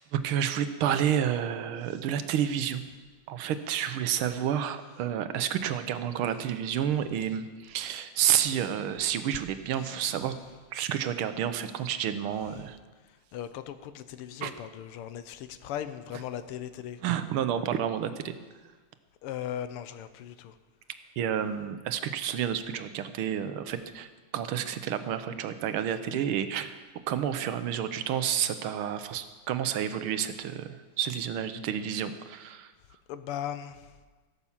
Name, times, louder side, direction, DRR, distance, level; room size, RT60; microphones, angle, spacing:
voice 1, 0.1-2.8 3.3-10.3 10.7-12.8 14.4-14.5 17.0-18.3 21.2-26.7 27.1-32.7, right 9 dB, 80° right, 10 dB, 1.6 m, -30 dB
voice 2, 13.3-17.0 19.2-20.5 33.1-33.9, left 10 dB, 90° left, 12 dB, 1.7 m, -38 dB
16.5 x 7.0 x 7.2 m, 1.3 s
omnidirectional pair, 2.4 m